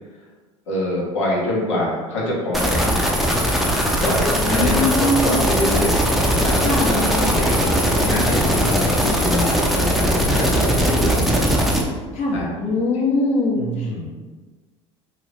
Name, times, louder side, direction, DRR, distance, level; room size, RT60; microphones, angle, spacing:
voice 1, 0.7-3.0 4.0-6.0 6.4-6.6 7.0-11.4 12.3-12.5 13.5-14.1, left 1 dB, 85° left, -5 dB, 0.8 m, -25 dB
sound 1, 2.5-11.8, equal, ahead, 0.5 m, -19 dB
voice 2, 4.5-5.5 6.6-7.1 12.1-14.1, left 2 dB, 45° left, -2 dB, 0.8 m, -22 dB
2.8 x 2.6 x 3.2 m, 1.3 s
hypercardioid pair, 75°, 15 cm